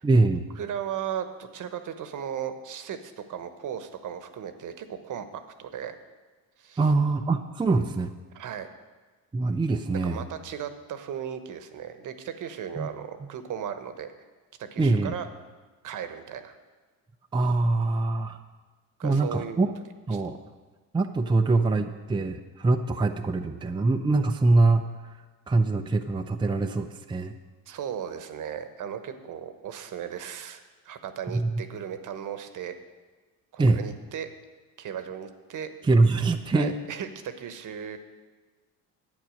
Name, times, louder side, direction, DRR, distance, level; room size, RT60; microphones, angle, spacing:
voice 1, 0.0-0.5 6.8-8.1 9.3-10.3 12.8-12.9 14.8-15.1 17.3-18.4 19.0-19.7 20.1-20.4 20.9-24.9 25.5-27.3 31.3-31.6 33.6-33.8 35.8-36.7, right 3 dB, 15° right, 5 dB, 0.6 m, -23 dB
voice 2, 0.6-6.0 6.6-6.8 8.3-8.7 10.0-14.1 14.6-15.3 15.8-16.5 19.0-19.6 20.1-20.2 27.7-32.8 33.5-34.3 34.8-35.7 36.5-38.0, right 8 dB, 55° right, 10 dB, 1.1 m, -36 dB
10.5 x 8.6 x 6.4 m, 1.3 s
cardioid pair, 95°, 37 cm